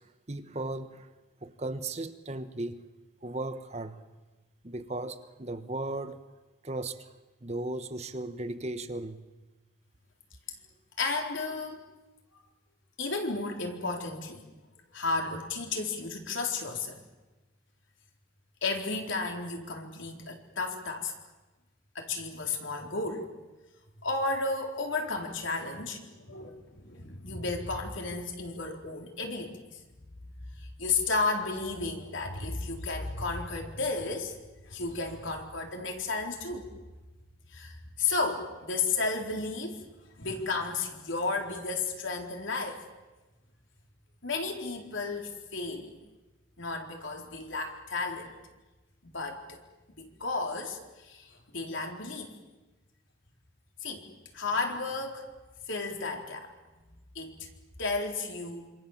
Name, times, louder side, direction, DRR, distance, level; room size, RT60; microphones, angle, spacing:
voice 1, 0.3-1.1 1.4-2.8 3.2-4.0 4.6-6.2 6.6-7.1 7.4-9.2, right 2 dB, 30° right, 1.2 m, -36 dB
voice 2, 11.0-11.9 13.0-14.5 14.9-17.0 18.6-21.1 21.9-23.3 24.0-29.8 30.4-34.4 34.6-36.7 37.5-39.8 40.2-42.8 44.2-45.9 46.6-48.4 49.1-49.6 50.0-52.3 53.8-54.1 54.3-55.3 55.7-56.5 57.1-57.5 57.8-58.7, left 3 dB, 70° left, 4.1 m, -33 dB
27.0 x 26.5 x 7.4 m
head